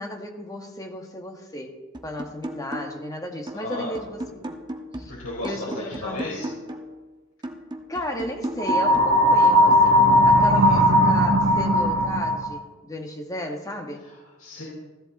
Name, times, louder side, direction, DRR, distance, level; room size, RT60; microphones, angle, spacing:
voice 1, 0.0-4.6 5.0-5.1 5.4-6.3 7.9-14.0, left 1 dB, 15° left, 3 dB, 1.6 m, -34 dB
sound 1, 1.9-3.1 3.5-7.0 7.4-9.9, right 1 dB, 20° right, 1.2 m, -36 dB
voice 2, 3.5-3.9 5.1-6.5 10.5-10.8 14.0-14.6, left 2 dB, 80° left, -7 dB, 4.6 m, -34 dB
sound 2, 8.6-12.6, equal, 75° right, 1.5 m, -18 dB
16.0 x 13.5 x 4.2 m, 1.2 s
head